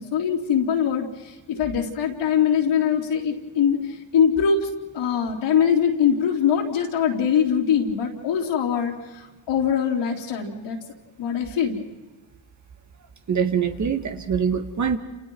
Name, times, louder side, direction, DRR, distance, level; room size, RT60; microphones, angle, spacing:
voice 1, 0.0-10.8 11.2-11.8, left 7 dB, 60° left, -3 dB, 3.4 m, -23 dB
voice 2, 13.3-15.0, right 7 dB, 35° right, 6 dB, 1.8 m, -24 dB
29.5 x 29.0 x 4.7 m, 1.2 s
cardioid pair, 100°, 50 cm